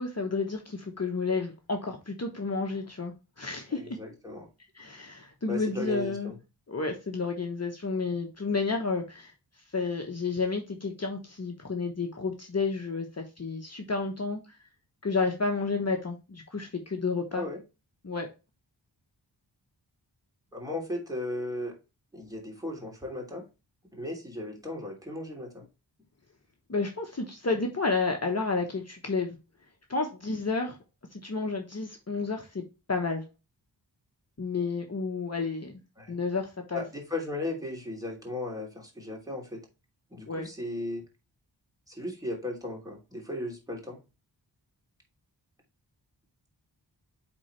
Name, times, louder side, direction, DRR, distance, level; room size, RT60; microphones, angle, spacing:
voice 1, 0.0-4.0 4.7-6.3 6.7-9.3 9.7-14.6 15.0-17.4 18.0-18.3 26.7-29.4 29.9-30.8 31.1-33.2 34.4-35.8 36.1-36.8 40.3-40.5, left 4 dB, 35° left, 2 dB, 1.1 m, -31 dB
voice 2, 3.7-4.5 5.5-6.4 17.3-17.6 20.5-21.7 22.1-23.4 23.9-25.7 36.0-36.2 36.7-39.6 40.1-41.0 41.9-44.0, left 1 dB, 10° right, -1 dB, 3.0 m, -36 dB
8.7 x 3.8 x 3.3 m, 0.28 s
wide cardioid pair, 75°, 43 cm